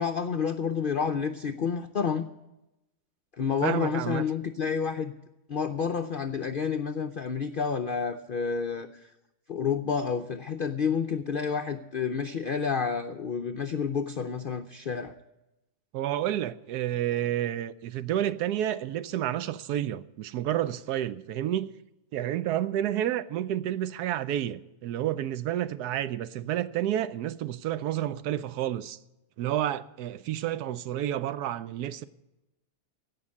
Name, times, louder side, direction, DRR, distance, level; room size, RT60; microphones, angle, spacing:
voice 1, 0.0-2.3 3.3-5.1 5.5-9.1 9.5-15.2, left 6 dB, 65° left, 0.5 m, -29 dB
voice 2, 3.6-4.2 15.9-21.7 22.1-29.0 29.4-32.1, right 12 dB, 85° right, 1.2 m, -30 dB
16.5 x 5.8 x 9.6 m
omnidirectional pair, 1.6 m